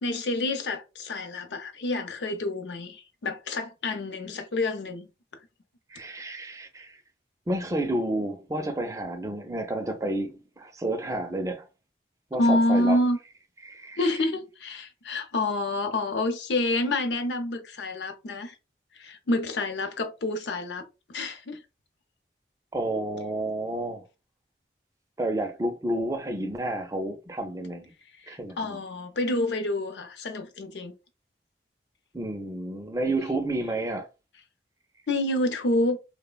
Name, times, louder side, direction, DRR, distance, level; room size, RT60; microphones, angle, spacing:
voice 1, 0.0-5.1 12.4-13.2 14.0-18.5 18.9-20.8 21.1-21.6 28.2-30.9 35.1-36.0, left 1 dB, 85° left, 0.6 m, -28 dB
voice 2, 5.9-7.0 7.5-11.7 12.3-13.0 13.6-14.0 22.7-24.0 25.2-27.9 28.3-28.8 32.1-34.1, right 1 dB, 20° right, 0.4 m, -30 dB
3.1 x 2.0 x 2.2 m
head